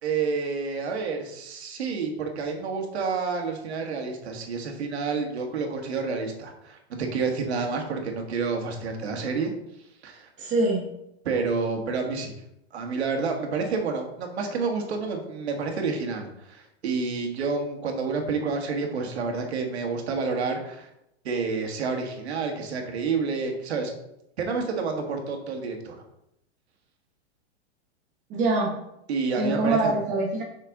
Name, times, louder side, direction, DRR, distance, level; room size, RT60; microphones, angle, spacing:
voice 1, 0.0-9.5 10.0-10.3 11.2-12.3 12.7-20.9 21.2-23.9 24.4-26.0 29.1-29.9, right 4 dB, 80° right, 3 dB, 1.8 m, -29 dB
voice 2, 10.4-10.9 28.3-28.7 29.3-30.4, right 2 dB, 25° right, 0 dB, 1.0 m, -24 dB
6.0 x 5.8 x 3.8 m, 0.80 s
supercardioid pair, 155°, 32 cm